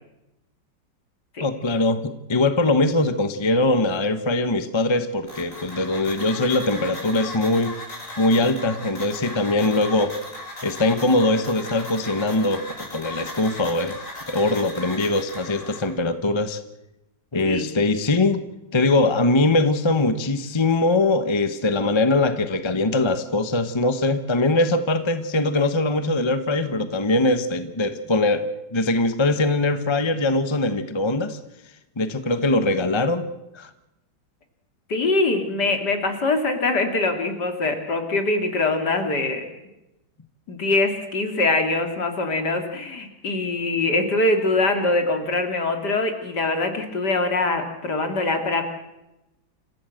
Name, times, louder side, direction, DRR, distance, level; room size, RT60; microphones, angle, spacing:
voice 1, 1.4-7.7 8.2-10.2 10.6-14.0 14.3-16.6 17.3-18.4 18.7-31.4 32.0-33.3 33.5-33.7, left 2 dB, 20° left, 11 dB, 0.9 m, -22 dB
sound 1, 5.3-15.9, left 1 dB, 40° left, 5.9 m, -37 dB
voice 2, 34.9-39.4 40.5-48.6, left 2 dB, 60° left, 6 dB, 3.3 m, -23 dB
27.5 x 15.5 x 7.9 m, 0.93 s
omnidirectional pair, 2.1 m